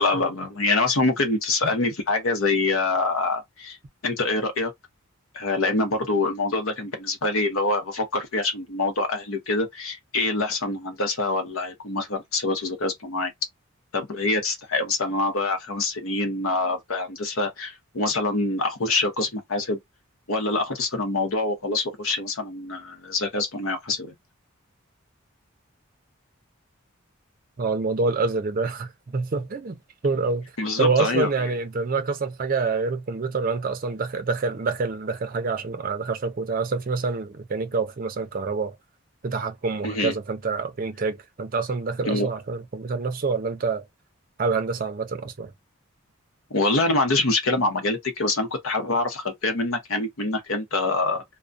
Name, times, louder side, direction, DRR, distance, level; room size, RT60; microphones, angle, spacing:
voice 1, 0.0-3.8 4.0-4.7 5.3-13.3 13.9-19.8 20.3-24.1 30.6-31.3 39.8-40.1 42.1-42.3 46.5-51.2, left 3 dB, 75° left, 0.8 m, -25 dB
voice 2, 27.6-30.5 30.8-38.8 39.2-43.8 44.4-45.5, right 4 dB, 40° right, 0.5 m, -27 dB
2.3 x 2.1 x 2.5 m
head